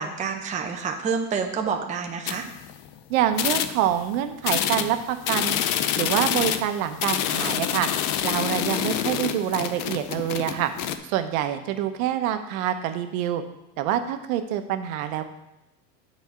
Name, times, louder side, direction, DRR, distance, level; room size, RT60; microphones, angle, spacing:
voice 1, 0.0-2.5, right 5 dB, 20° right, 3 dB, 0.6 m, -28 dB
sound 1, 2.3-2.9 3.3-4.0 4.4-11.0, left 10 dB, 50° left, 0.6 m, -27 dB
voice 2, 3.1-5.6 6.0-7.9 8.2-10.7 11.0-13.4 13.8-15.2, right 11 dB, 80° right, 8 dB, 0.9 m, -26 dB
7.1 x 4.1 x 6.6 m, 0.88 s
supercardioid pair, 145°, 41 cm